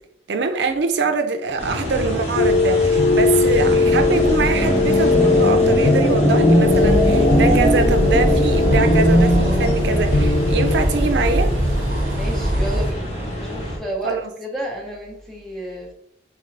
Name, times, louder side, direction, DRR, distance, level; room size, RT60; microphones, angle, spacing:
voice 1, 0.3-11.5 14.0-14.2, right 3 dB, 75° right, 0.5 m, -23 dB
sound 1, 1.6-13.8, equal, 35° left, 1.4 m, -21 dB
sound 2, 2.4-10.9, left 4 dB, 65° left, 0.4 m, -20 dB
sound 3, 6.7-12.9, equal, 50° right, 1.1 m, -21 dB
voice 2, 12.2-15.9, equal, ahead, 0.8 m, -31 dB
3.7 x 3.6 x 3.2 m
head